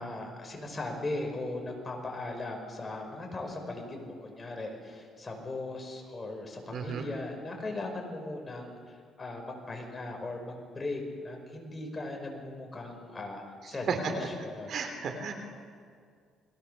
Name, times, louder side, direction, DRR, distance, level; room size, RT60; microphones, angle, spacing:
voice 1, 0.0-14.8, left 2 dB, 20° left, 2 dB, 5.3 m, -38 dB
voice 2, 6.7-7.0 13.9-14.1 14.7-15.3, right 5 dB, 50° right, 5 dB, 3.4 m, -32 dB
29.5 x 22.0 x 6.8 m, 2.1 s
cardioid pair, 135°, 0 cm